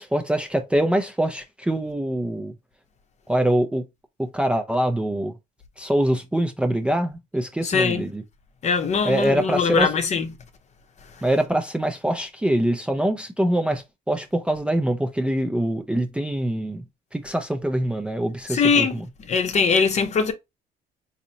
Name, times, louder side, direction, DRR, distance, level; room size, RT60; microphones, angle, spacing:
voice 1, 0.0-2.5 3.3-3.8 4.2-5.3 5.8-8.2 9.0-9.9 11.2-16.8 17.1-19.1, right 1 dB, 5° right, 0.5 m, -24 dB
voice 2, 7.6-8.0 8.6-10.3 18.5-19.0 19.3-20.3, left 5 dB, 40° left, 0.8 m, -21 dB
4.1 x 2.7 x 2.8 m
cardioid pair, 110°, 17 cm